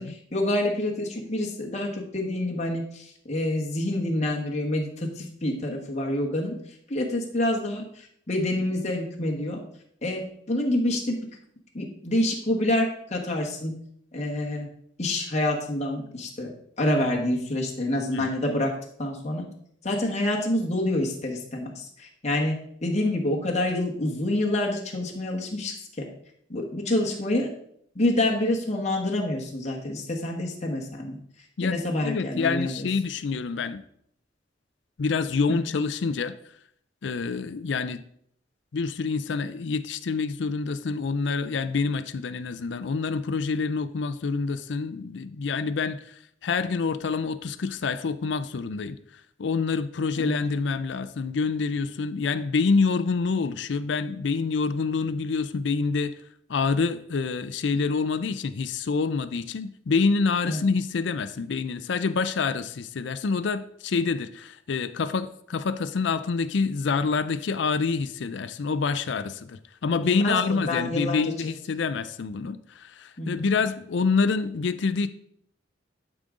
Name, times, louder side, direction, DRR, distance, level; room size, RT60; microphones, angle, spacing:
voice 1, 0.0-9.6 10.0-11.2 11.7-13.8 14.1-14.7 15.0-16.5 16.8-18.7 19.0-19.5 19.8-26.1 26.5-27.5 27.9-31.2 31.6-32.9 35.5-35.6 50.2-50.3 60.4-60.6 70.0-71.3 73.2-73.4, left 1 dB, 35° left, -1 dB, 1.3 m, -27 dB
voice 2, 31.6-33.8 35.0-36.3 37.0-38.0 38.7-49.0 49.4-56.1 56.5-75.1, left 4 dB, 65° left, 12 dB, 0.4 m, -27 dB
11.5 x 5.1 x 3.7 m, 0.67 s
head